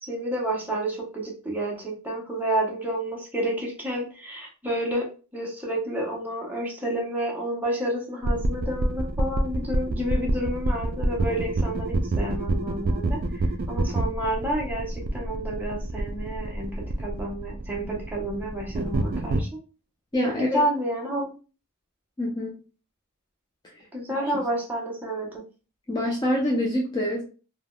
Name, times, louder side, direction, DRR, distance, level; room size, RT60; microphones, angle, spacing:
voice 1, 0.0-5.0 5.3-19.5 20.3-21.4 23.9-25.3, right 1 dB, 10° right, -2 dB, 0.8 m, -30 dB
sound 1, 8.2-19.4, right 2 dB, 40° right, 0.3 m, -28 dB
voice 2, 20.1-20.6 22.2-22.5 23.7-23.8 24.1-24.3 25.9-27.2, equal, 20° left, -2 dB, 0.4 m, -26 dB
3.3 x 2.2 x 2.2 m, 0.35 s
head